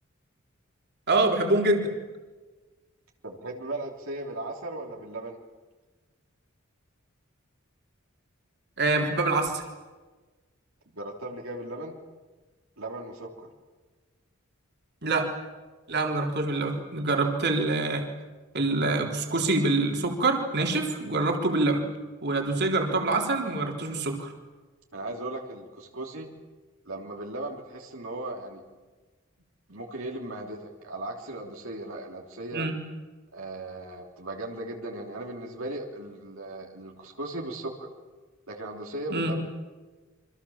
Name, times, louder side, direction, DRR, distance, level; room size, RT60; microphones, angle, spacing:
voice 1, 1.1-1.9 8.8-9.6 15.0-15.3 15.9-18.1 18.5-21.8 22.2-24.3 32.5-32.7 39.1-39.3, right 2 dB, 55° right, 2 dB, 3.8 m, -25 dB
voice 2, 3.2-5.4 10.9-12.0 12.8-13.3 24.9-26.3 26.9-28.6 29.7-32.7 33.3-37.9 38.5-39.4, right 2 dB, 75° right, 0 dB, 3.5 m, -37 dB
28.0 x 25.5 x 7.4 m, 1.3 s
head